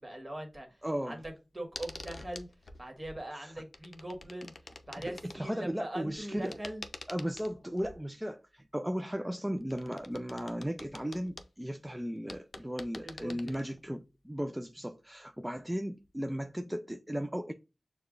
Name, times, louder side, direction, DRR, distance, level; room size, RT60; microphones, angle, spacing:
voice 1, 0.0-0.7 1.0-2.5 2.8-6.8 13.0-13.6, right 1 dB, 30° right, 1.5 m, -41 dB
voice 2, 0.8-1.2 3.3-3.5 5.0-6.6 7.1-17.5, equal, 10° right, 0.4 m, -36 dB
sound 1, 1.7-3.2 3.5-5.4 6.4-8.0 9.5-11.5 12.0-12.1 12.3-13.9 16.0-16.1, left 3 dB, 65° left, 0.5 m, -47 dB
6.7 x 2.3 x 2.4 m
cardioid pair, 50°, 0 cm